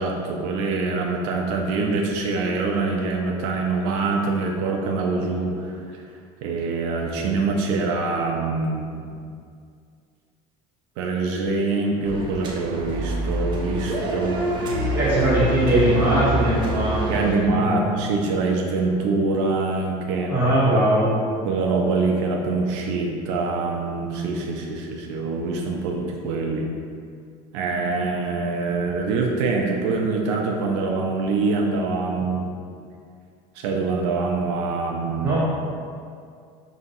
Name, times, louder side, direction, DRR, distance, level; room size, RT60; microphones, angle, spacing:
voice 1, 0.0-6.0 6.4-9.1 11.0-14.8 17.1-20.3 21.4-26.7 27.5-32.5 33.6-35.4, right 3 dB, 85° right, 0 dB, 0.5 m, -25 dB
sound 1, 12.0-17.3, right 1 dB, 35° right, 0.4 m, -26 dB
voice 2, 14.9-17.8 20.3-21.1 35.2-35.4, right 1 dB, 15° right, -11 dB, 1.2 m, -20 dB
5.4 x 2.8 x 2.6 m, 2.3 s
cardioid pair, 175°, 15 cm